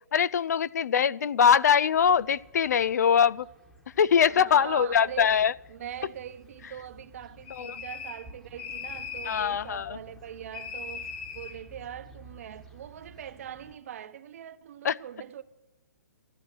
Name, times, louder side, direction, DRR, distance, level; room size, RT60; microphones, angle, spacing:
voice 1, 0.1-3.5 4.0-5.5 7.6-7.8 9.3-10.0 14.8-15.0, left 7 dB, 75° left, 0.4 m, -23 dB
sound 1, 1.9-13.8, right 1 dB, 5° left, 1.2 m, -53 dB
voice 2, 4.3-5.4 5.7-15.4, right 10 dB, 55° right, 1.0 m, -42 dB
sound 2, 7.5-8.3 8.6-9.5 10.5-11.6, left 6 dB, 40° left, 2.5 m, -39 dB
13.5 x 10.0 x 7.6 m
hypercardioid pair, 150°, 9 cm